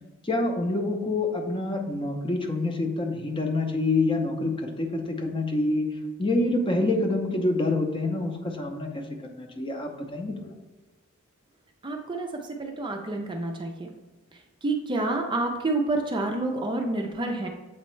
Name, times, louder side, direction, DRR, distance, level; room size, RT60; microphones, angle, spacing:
voice 1, 0.2-5.9 6.2-10.5, left 2 dB, 25° left, 3 dB, 0.7 m, -27 dB
voice 2, 11.8-12.3 12.6-13.9 14.6-17.5, right 2 dB, 20° right, 3 dB, 0.4 m, -28 dB
7.6 x 4.3 x 3.1 m, 1.3 s
head